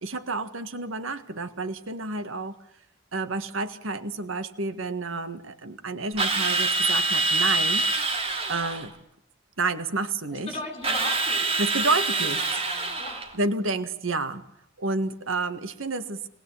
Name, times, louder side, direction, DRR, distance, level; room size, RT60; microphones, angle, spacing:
voice 1, 0.0-2.6 3.1-7.8 8.5-8.9 9.6-10.6 11.6-12.4 13.3-14.4 14.8-16.3, right 3 dB, 85° right, 10 dB, 1.7 m, -30 dB
Drill, 6.2-8.9 10.8-13.3, right 3 dB, 30° right, 3.1 m, -25 dB
voice 2, 10.5-11.5 11.8-13.2, left 2 dB, 30° left, 2 dB, 6.0 m, -37 dB
26.0 x 20.0 x 8.4 m, 0.72 s
head